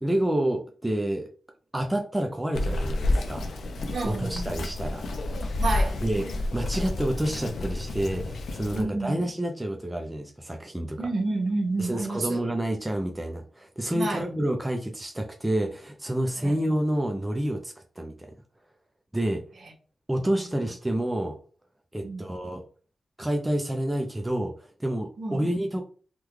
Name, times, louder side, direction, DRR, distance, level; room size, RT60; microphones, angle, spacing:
voice 1, 0.0-1.3 1.7-3.5 4.0-5.0 6.0-11.1 11.8-18.3 19.1-19.4 20.1-21.4 21.9-22.6 23.2-25.8, right 1 dB, 10° right, 0.5 m, -29 dB
Bird vocalization bird call bird song, 2.5-8.8, left 2 dB, 85° left, 0.5 m, -29 dB
voice 2, 3.9-4.5 5.6-6.0 8.8-9.3 11.0-12.4 13.9-14.3 16.4-16.6 20.2-20.5 22.0-22.2 25.2-25.7, right 2 dB, 70° right, 1.1 m, -30 dB
3.6 x 2.3 x 3.1 m
wide cardioid pair, 90°, 0 cm